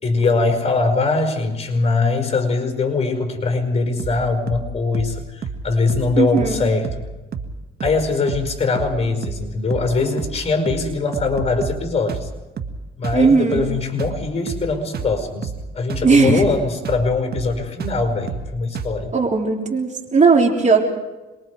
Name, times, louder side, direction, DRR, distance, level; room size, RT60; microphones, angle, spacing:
voice 1, 0.0-6.9 7.8-12.3 13.0-19.1, left 3 dB, 35° left, 6 dB, 4.9 m, -22 dB
sound 1, 4.0-4.2 4.5-4.7 4.9-5.2 5.4-5.6 5.9-6.1 6.4-6.6 6.8-7.1 7.3-7.5 7.8-8.0 8.3-8.5 8.8-9.0 9.2-9.5 9.7-9.9 10.2-10.4 10.7-10.9 11.1-11.8 12.1-12.3 12.6-12.8 13.0-13.3 13.5-13.7 14.0-14.2 14.5-14.7 14.9-15.2 15.4-15.6 15.9-16.1 16.4-16.6 16.9-17.1 17.3-17.5 17.8-18.0 18.3-18.5 18.8-19.0, right 5 dB, 50° right, 1.9 m, -29 dB
voice 2, 6.2-6.7 13.1-13.7 16.0-16.4 19.1-20.9, right 4 dB, 35° right, 1 dB, 3.7 m, -17 dB
27.5 x 22.5 x 4.8 m, 1.1 s
cardioid pair, 90°, 20 cm